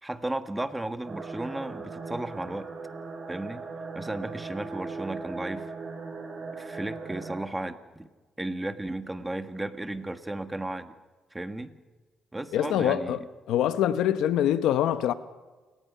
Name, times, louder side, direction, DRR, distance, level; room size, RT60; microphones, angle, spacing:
voice 1, 0.0-2.7 3.3-3.7 3.9-5.7 6.6-8.1 8.4-10.9 11.3-11.7 12.3-13.2, right 2 dB, 10° right, 1.4 m, -34 dB
sound 1, 1.1-7.4, right 4 dB, 40° right, 5.3 m, -38 dB
voice 2, 12.5-13.2 13.5-15.1, left 11 dB, 85° left, 0.9 m, -24 dB
28.5 x 18.5 x 5.6 m
cardioid pair, 90°, 0 cm